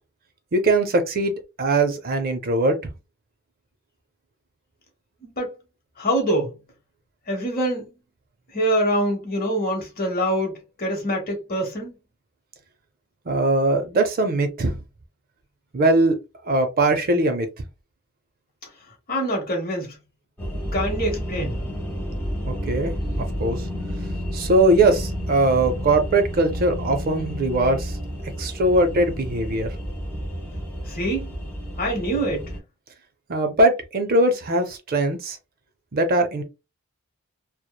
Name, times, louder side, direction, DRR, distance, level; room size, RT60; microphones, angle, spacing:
voice 1, 0.5-2.8 13.3-14.8 15.7-16.2 16.5-17.5 22.4-22.9 23.4-23.6 24.3-27.9 28.4-29.7 33.3-35.4 35.9-36.4, right 2 dB, 40° right, 0.4 m, -20 dB
voice 2, 6.0-6.5 7.3-7.9 8.5-11.9 19.1-19.9 20.7-21.5 30.9-31.3 31.8-32.5, right 1 dB, 40° left, 1.1 m, -25 dB
sound 1, 20.4-32.6, equal, 10° left, 1.0 m, -30 dB
3.0 x 2.0 x 2.2 m
head